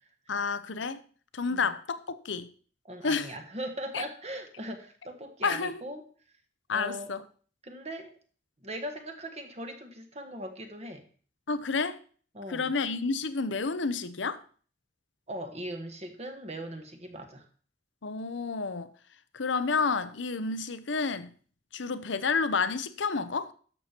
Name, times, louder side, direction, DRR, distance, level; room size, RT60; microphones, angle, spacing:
voice 1, 0.3-1.0 1.3-2.5 3.0-3.3 3.9-4.0 5.4-5.8 6.7-7.2 11.5-12.0 12.5-14.4 18.0-18.9 19.3-21.3 21.7-23.5, left 4 dB, 85° left, 0.8 m, -30 dB
voice 2, 2.8-6.0 6.7-7.1 7.6-8.1 8.6-11.0 12.3-12.8 15.3-17.5, right 1 dB, 35° right, 1.5 m, -39 dB
12.0 x 6.9 x 4.5 m
head